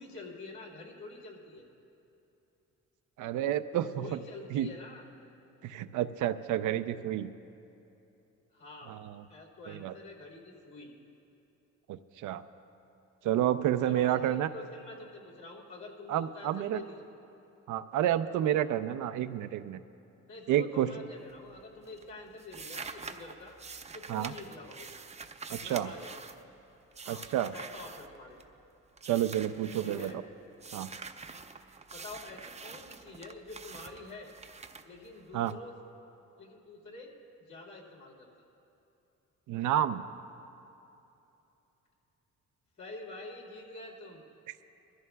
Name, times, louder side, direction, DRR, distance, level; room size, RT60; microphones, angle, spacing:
voice 1, 0.0-1.7 4.0-5.1 8.5-8.9 9.3-10.9 13.9-17.1 20.3-23.6 23.9-24.9 25.6-26.2 27.0-27.2 27.5-28.4 29.8-30.2 31.9-34.3 34.8-35.7 36.4-37.1 37.4-38.3 42.8-44.2, left 2 dB, 70° left, -2 dB, 2.7 m, -47 dB
voice 2, 3.2-4.2 4.5-4.7 5.6-7.3 8.9-9.2 9.7-9.9 11.9-12.4 13.2-14.5 16.1-16.8 17.7-19.8 20.5-20.9 24.1-24.3 25.5-25.9 27.1-27.5 29.0-30.1 30.7-30.9 35.3-35.5 39.5-40.0, right 11 dB, 80° right, 12 dB, 0.5 m, -30 dB
sound 1, 21.2-21.6 21.8-28.6 29.0-30.2 30.6-35.5, right 4 dB, 20° right, 0.5 m, -46 dB
22.5 x 14.0 x 2.3 m, 2.9 s
cardioid pair, 90°, 30 cm